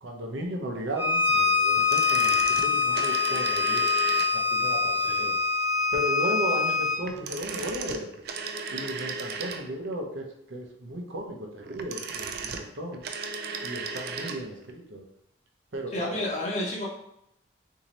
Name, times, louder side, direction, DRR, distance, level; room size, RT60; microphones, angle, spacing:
voice 1, 0.0-3.9 4.3-5.4 5.9-8.1 8.7-13.0 13.6-15.0 15.7-16.2, equal, 70° right, 1 dB, 0.7 m, -35 dB
Bowed string instrument, 1.0-7.0, left 4 dB, 15° right, 1.0 m, -24 dB
sound 1, 1.8-4.6 7.0-9.9 11.6-14.4 14.7-14.8, right 5 dB, 55° right, 0.3 m, -36 dB
voice 2, 15.9-16.9, left 1 dB, 35° left, -3 dB, 0.9 m, -31 dB
3.9 x 2.7 x 3.0 m, 0.77 s
head